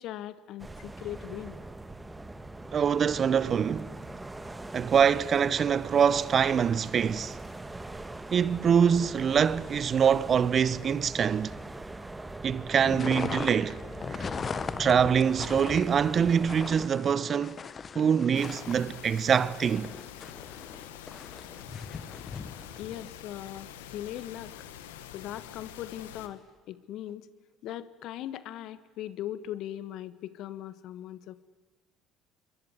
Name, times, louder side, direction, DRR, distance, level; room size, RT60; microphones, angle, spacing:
voice 1, 0.0-1.6 22.8-24.7 25.1-26.4 26.7-27.3 27.6-31.4, left 12 dB, 60° left, 1.4 m, -39 dB
sound 1, 0.6-16.9, right 2 dB, 15° right, 1.7 m, -42 dB
voice 2, 2.7-3.9 4.7-7.4 8.3-11.5 12.4-13.8 14.1-14.2 14.8-17.6 17.9-19.9, right 7 dB, 40° right, 0.9 m, -24 dB
sound 2, 12.7-23.1, left 5 dB, 35° left, 1.4 m, -39 dB
sound 3, 18.3-26.3, left 10 dB, 80° left, 1.7 m, -46 dB
27.0 x 22.5 x 9.7 m
hypercardioid pair, 60°, 0 cm